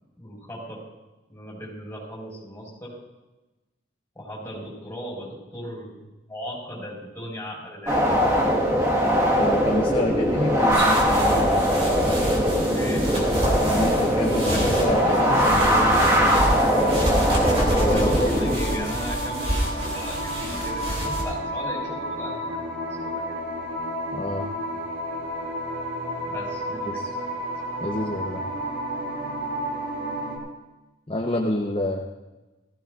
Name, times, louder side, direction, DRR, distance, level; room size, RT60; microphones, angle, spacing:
voice 1, 0.2-0.8 1.3-3.0 4.1-8.4 12.7-13.0 17.8-22.7 23.0-23.4 26.3-27.0, equal, 10° left, -4 dB, 4.7 m, -37 dB
sound 1, 7.9-18.6, equal, 15° right, 1.6 m, -21 dB
voice 2, 9.3-11.8 13.6-16.6 17.8-18.3 18.6-18.9 24.1-24.5 26.8-27.1 27.8-28.4 31.1-32.0, left 1 dB, 30° left, 1 dB, 0.9 m, -28 dB
sound 2, 10.7-21.2, right 1 dB, 35° right, 3.1 m, -29 dB
sound 3, 14.3-30.4, equal, 90° right, 3.9 m, -31 dB
18.0 x 15.0 x 2.5 m, 1.1 s
head